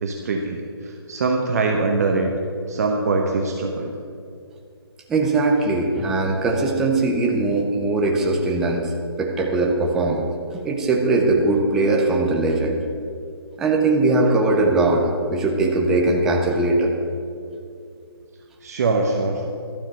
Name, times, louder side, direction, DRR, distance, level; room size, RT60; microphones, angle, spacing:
voice 1, 0.0-2.3 2.7-4.0 18.6-19.5, right 3 dB, 35° right, 1 dB, 0.9 m, -23 dB
voice 2, 5.1-8.9 9.2-12.8 13.6-16.9, right 2 dB, 5° right, 0 dB, 0.4 m, -20 dB
12.0 x 7.3 x 7.7 m, 2.4 s
hypercardioid pair, 165°, 14 cm